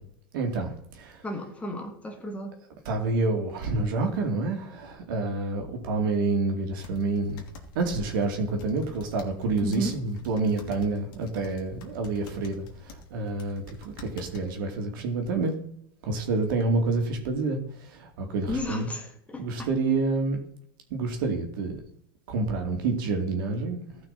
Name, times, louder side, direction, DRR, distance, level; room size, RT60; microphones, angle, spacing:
voice 1, 0.3-1.2 2.9-7.4 7.7-15.5 16.0-17.6 17.9-18.9 19.4-20.4 20.9-21.8 22.3-24.0, right 3 dB, 70° right, 3 dB, 2.6 m, -28 dB
voice 2, 1.2-2.6 9.6-10.0 18.5-19.7, equal, 10° left, 4 dB, 1.7 m, -33 dB
sound 1, 6.8-14.6, left 3 dB, 65° left, 2.5 m, -47 dB
14.0 x 5.8 x 4.3 m, 0.70 s
supercardioid pair, 135°, 12 cm